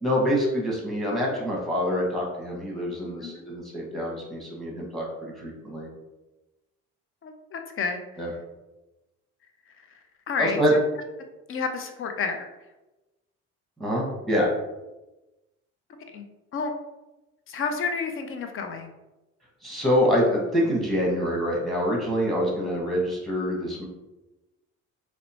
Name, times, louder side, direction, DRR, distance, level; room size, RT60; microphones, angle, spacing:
voice 1, 0.0-5.9 8.2-8.3 10.4-10.7 13.8-14.5 19.6-23.9, equal, ahead, -3 dB, 1.0 m, -26 dB
voice 2, 7.2-8.0 10.3-10.6 11.5-12.5 16.1-16.2 16.5-16.7 17.5-18.9, left 5 dB, 40° left, 5 dB, 0.5 m, -30 dB
2.8 x 2.1 x 2.7 m, 1.0 s
supercardioid pair, 65°, 34 cm